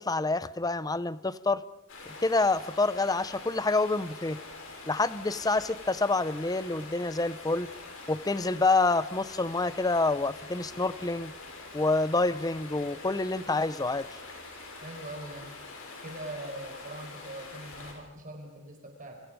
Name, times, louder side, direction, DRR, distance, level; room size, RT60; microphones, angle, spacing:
voice 1, 0.0-1.6 2.1-4.4 4.9-7.7 8.1-11.3 11.7-14.1, left 3 dB, 20° left, 15 dB, 0.7 m, -27 dB
Stream, 1.9-17.9, left 3 dB, 75° left, 6.9 m, -45 dB
voice 2, 14.8-15.5 16.0-19.2, right 1 dB, 40° right, 2 dB, 4.8 m, -42 dB
28.5 x 26.5 x 5.2 m, 1.0 s
head